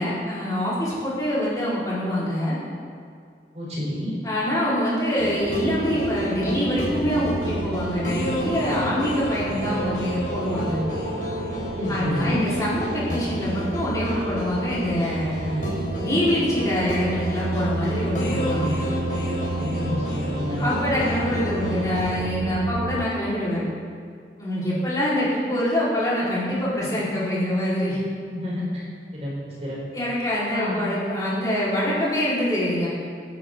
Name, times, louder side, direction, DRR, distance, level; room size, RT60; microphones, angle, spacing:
voice 1, 0.0-2.6 4.2-10.8 11.9-15.6 16.0-18.8 20.6-23.6 24.4-28.0 29.9-32.9, equal, 20° left, -9 dB, 4.3 m, -25 dB
voice 2, 3.5-4.2 11.8-12.5 19.6-20.6 28.3-28.9 29.1-29.8 30.5-30.8, left 1 dB, 35° right, -5 dB, 3.9 m, -29 dB
sound 1, 5.2-22.2, equal, 45° left, 4.1 m, -31 dB
sound 2, 5.4-23.1, right 2 dB, 65° right, 0.6 m, -31 dB
22.0 x 10.0 x 3.8 m, 2.2 s
head